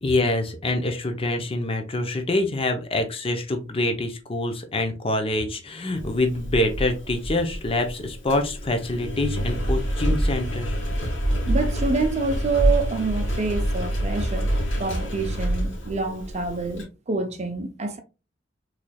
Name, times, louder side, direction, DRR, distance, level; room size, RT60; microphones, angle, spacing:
voice 1, 0.0-10.8, left 2 dB, 30° left, 0.6 m, -25 dB
Engine, 6.0-16.8, equal, 80° left, 1.7 m, -27 dB
voice 2, 11.5-14.5 14.8-18.0, right 4 dB, 35° right, 0.5 m, -27 dB
4.3 x 3.2 x 2.2 m
head